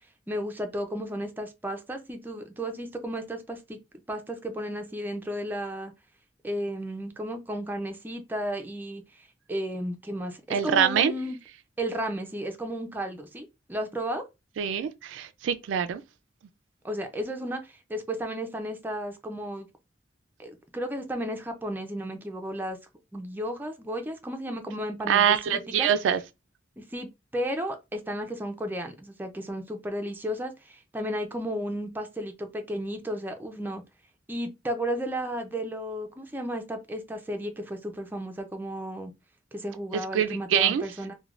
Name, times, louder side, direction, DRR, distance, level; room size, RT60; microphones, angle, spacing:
voice 1, 0.3-3.8 4.1-5.9 6.4-11.4 11.8-14.2 16.8-19.7 20.4-22.8 23.1-25.2 25.8-25.9 26.8-33.8 34.3-39.1 39.5-41.1, equal, 10° right, 0.4 m, -33 dB
voice 2, 10.5-11.1 14.6-16.0 25.1-26.2 39.9-40.8, right 8 dB, 80° right, 0.3 m, -24 dB
3.2 x 2.2 x 2.3 m
head